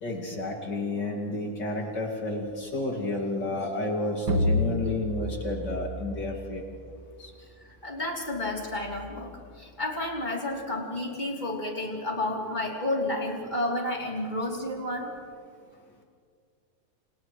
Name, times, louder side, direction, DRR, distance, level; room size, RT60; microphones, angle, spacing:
voice 1, 0.0-6.6, left 2 dB, 55° left, 0 dB, 3.1 m, -31 dB
sound 1, 4.3-6.9, left 1 dB, 55° right, 2.2 m, -29 dB
voice 2, 7.8-9.3 9.6-15.1, left 1 dB, 20° left, -2 dB, 3.5 m, -31 dB
30.0 x 28.0 x 3.3 m, 2.1 s
omnidirectional pair, 2.3 m